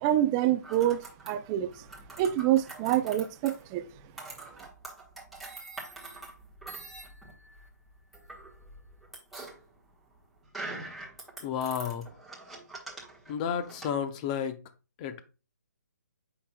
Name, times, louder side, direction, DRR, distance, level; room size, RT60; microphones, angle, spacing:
voice 1, 0.0-1.7 2.2-3.8, right 12 dB, 15° right, 0.3 m, -26 dB
sound 1, 0.6-13.9, right 2 dB, ahead, 1.4 m, -44 dB
voice 2, 11.4-12.1 13.3-14.6 15.0-15.2, left 8 dB, 25° left, 0.7 m, -32 dB
8.2 x 5.8 x 2.2 m
figure-of-eight pair, 150°, 10 cm